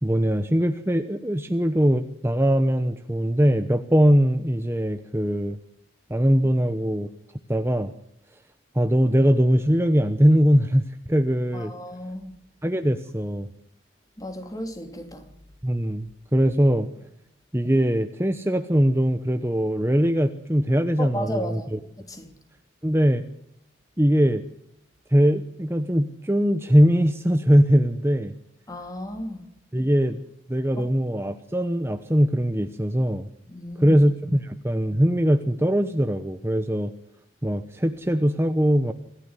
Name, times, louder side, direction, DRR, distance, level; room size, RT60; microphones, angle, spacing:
voice 1, 0.0-5.6 6.1-7.1 7.5-7.9 8.7-11.7 12.6-13.5 15.6-16.9 17.5-21.8 22.8-23.2 24.0-24.4 25.1-28.3 29.7-30.2 30.5-33.3 33.8-36.9 37.4-38.9, equal, 15° right, 0.9 m, -21 dB
voice 2, 11.5-12.3 14.2-15.3 21.0-22.3 28.7-29.5 30.8-30.9 33.5-34.0, equal, 20° left, 3.2 m, -34 dB
26.0 x 16.0 x 9.9 m
head